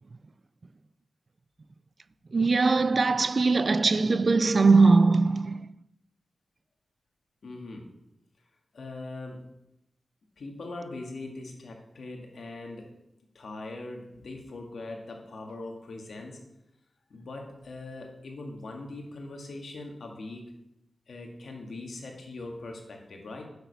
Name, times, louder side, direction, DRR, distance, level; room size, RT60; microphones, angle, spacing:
voice 1, 2.3-5.7, right 3 dB, 50° right, 0.4 m, -21 dB
voice 2, 7.4-7.9 8.7-9.5 10.4-12.9 13.3-16.4 17.1-20.6 21.1-23.5, left 2 dB, 75° left, 1.9 m, -41 dB
7.9 x 6.5 x 6.8 m
cardioid pair, 65°, 0 cm